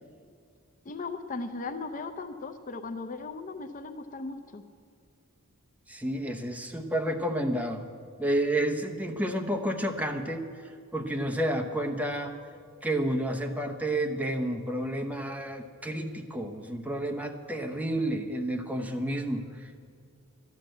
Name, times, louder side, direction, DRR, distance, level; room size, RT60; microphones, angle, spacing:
voice 1, 0.8-4.6, left 3 dB, 35° left, 8 dB, 0.5 m, -37 dB
voice 2, 5.9-7.8 8.2-10.4 10.9-12.3 12.8-19.8, right 1 dB, 5° right, 2 dB, 0.9 m, -30 dB
12.5 x 10.5 x 7.8 m, 2.2 s
head